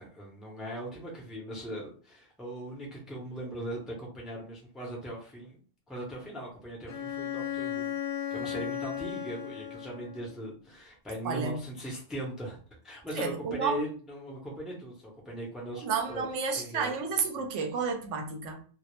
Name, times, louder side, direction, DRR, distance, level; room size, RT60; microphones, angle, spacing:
voice 1, 0.0-5.6 5.9-7.9 8.3-12.6 12.8-16.3 16.6-17.0, right 1 dB, ahead, 0.4 m, -39 dB
Bowed string instrument, 6.9-10.4, left 9 dB, 60° left, 0.7 m, -35 dB
voice 2, 11.2-11.6 13.1-13.8 15.8-18.6, right 5 dB, 70° right, 0.9 m, -31 dB
2.3 x 2.0 x 2.9 m
omnidirectional pair, 1.3 m